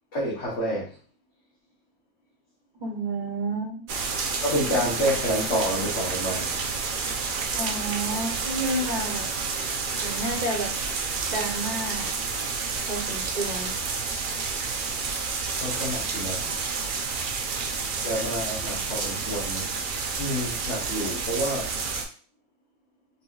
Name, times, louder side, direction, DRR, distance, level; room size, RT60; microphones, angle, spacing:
voice 1, 0.1-0.9 4.4-6.6 15.6-16.4 18.0-19.7 20.2-21.7, equal, 65° left, -6 dB, 1.3 m, -28 dB
voice 2, 2.8-3.9 7.6-9.3 10.0-10.7 11.3-12.2 12.9-13.7, right 2 dB, 40° right, -1 dB, 0.8 m, -30 dB
sound 1, 3.9-22.1, right 4 dB, 65° right, 0.5 m, -30 dB
4.0 x 2.7 x 2.3 m, 0.41 s
omnidirectional pair, 1.4 m